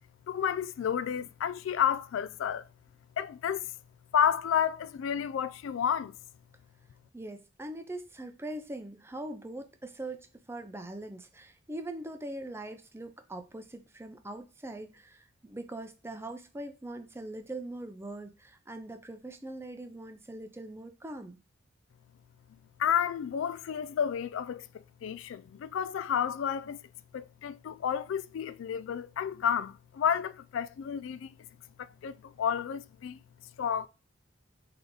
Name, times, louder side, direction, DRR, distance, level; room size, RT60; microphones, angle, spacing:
voice 1, 0.3-2.7 3.2-3.7 4.1-6.1 22.8-24.7 25.0-26.8 27.1-31.3 31.8-33.2 33.6-33.9, left 8 dB, 70° left, 0.3 m, -31 dB
voice 2, 7.1-21.4, right 1 dB, 10° right, 0.5 m, -42 dB
3.9 x 3.4 x 3.6 m
head